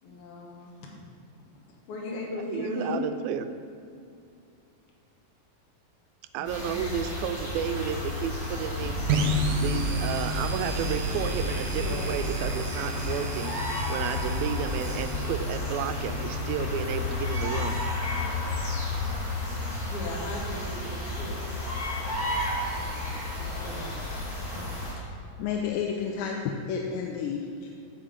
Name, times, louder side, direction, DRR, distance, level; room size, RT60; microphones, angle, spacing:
voice 1, 0.0-0.9 1.7-3.0 6.4-7.2 11.6-12.0 19.9-21.4 22.8-24.1 24.5-24.7 25.0-25.1, left 2 dB, 65° left, -2 dB, 2.5 m, -38 dB
voice 2, 2.3-3.5 6.3-17.8, right 8 dB, 90° right, 9 dB, 2.4 m, -32 dB
sound 1, 6.4-24.9, left 2 dB, 25° left, 2.8 m, -32 dB
sound 2, 7.8-12.6 13.1-13.2 13.8-13.9 14.1-14.7, right 6 dB, 55° right, 1.1 m, -35 dB
sound 3, 9.1-16.7, equal, 70° right, 2.0 m, -33 dB
voice 3, 25.4-27.7, left 6 dB, 85° left, 1 dB, 2.3 m, -31 dB
9.1 x 5.0 x 7.4 m, 2.5 s
omnidirectional pair, 4.1 m